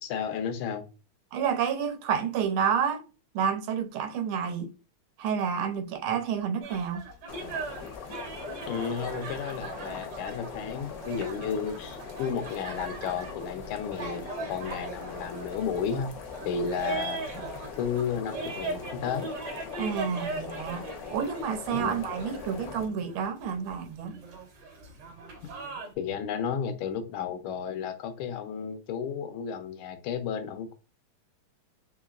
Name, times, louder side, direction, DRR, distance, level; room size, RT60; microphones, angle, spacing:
voice 1, 0.0-0.8 8.7-14.2 14.5-16.1 16.4-17.2 17.8-19.3 21.7-22.0 25.4-25.5 26.0-30.7, left 7 dB, 85° left, 1.5 m, -33 dB
voice 2, 1.3-3.0 3.3-4.7 5.2-7.0 8.7-8.8 19.8-20.8 21.1-24.2, right 7 dB, 80° right, 1.5 m, -29 dB
sound 1, 6.6-25.9, right 4 dB, 60° right, 1.4 m, -40 dB
sound 2, 7.3-22.9, left 6 dB, 65° left, 0.9 m, -42 dB
3.9 x 2.9 x 2.3 m
omnidirectional pair, 2.3 m